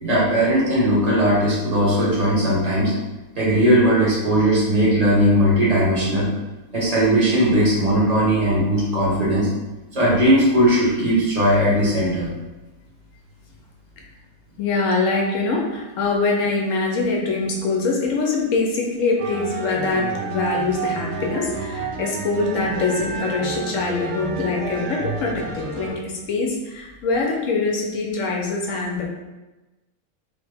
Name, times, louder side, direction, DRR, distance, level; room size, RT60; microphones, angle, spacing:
voice 1, 0.0-2.9 3.3-6.3 6.7-9.5 9.9-12.3, equal, 30° right, -7 dB, 0.9 m, -18 dB
voice 2, 14.6-29.1, left 3 dB, 70° left, -1 dB, 0.9 m, -24 dB
sound 1, 19.2-25.9, right 5 dB, 75° right, 1.0 m, -29 dB
3.2 x 2.1 x 3.3 m, 1.1 s
omnidirectional pair, 1.5 m